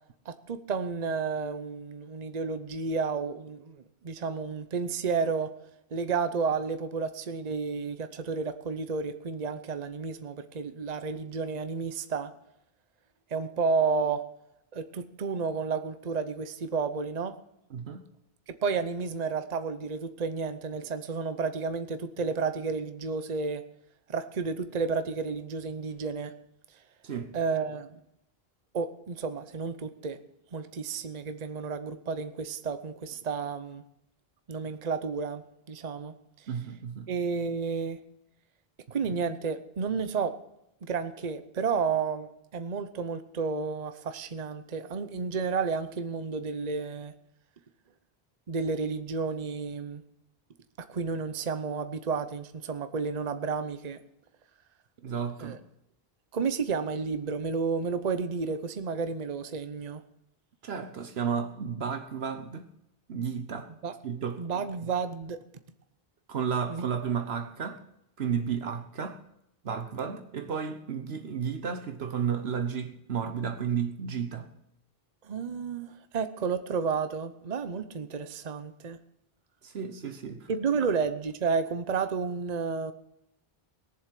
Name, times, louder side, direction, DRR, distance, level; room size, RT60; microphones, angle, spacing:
voice 1, 0.3-5.5 5.9-12.3 13.3-14.2 14.7-17.3 18.6-23.6 24.1-26.3 27.3-28.0 28.7-30.2 30.5-33.8 34.5-36.1 37.1-38.0 38.9-40.3 40.8-47.1 48.5-50.0 50.8-54.0 55.4-55.6 56.3-60.0 63.8-63.9 64.4-65.4 66.7-66.9 75.2-79.0 80.5-82.9, right 5 dB, 45° right, 0.9 m, -31 dB
voice 2, 17.7-18.1 27.0-27.3 36.5-37.1 55.0-55.6 60.6-62.7 63.1-63.7 64.0-64.4 66.3-67.8 68.2-69.2 69.6-74.5 79.6-80.5, right 7 dB, 80° right, 1.2 m, -32 dB
18.5 x 7.3 x 7.5 m
omnidirectional pair, 1.0 m